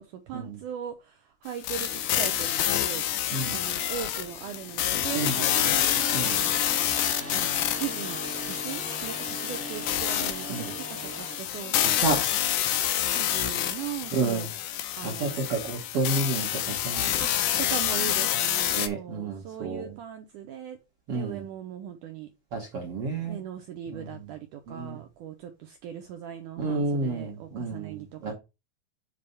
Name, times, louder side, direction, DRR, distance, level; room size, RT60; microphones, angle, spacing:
voice 1, 0.0-3.0 3.5-6.6 7.3-8.2 8.5-12.1 13.1-14.5 15.0-15.5 17.2-17.3 17.6-20.8 21.1-22.3 23.2-28.3, right 10 dB, 80° right, 1.8 m, -39 dB
sound 1, 1.6-18.9, left 12 dB, 80° left, 1.8 m, -28 dB
sound 2, 1.8-11.8, equal, 5° left, 0.9 m, -40 dB
voice 2, 3.3-3.6 5.1-5.4 6.1-6.4 10.5-10.7 11.8-12.2 13.1-13.2 14.1-14.5 15.0-17.1 18.7-19.9 21.1-21.4 22.5-23.4 23.9-24.2 24.7-25.0 26.6-28.3, right 3 dB, 65° right, 1.5 m, -30 dB
7.6 x 3.4 x 5.2 m
omnidirectional pair, 4.5 m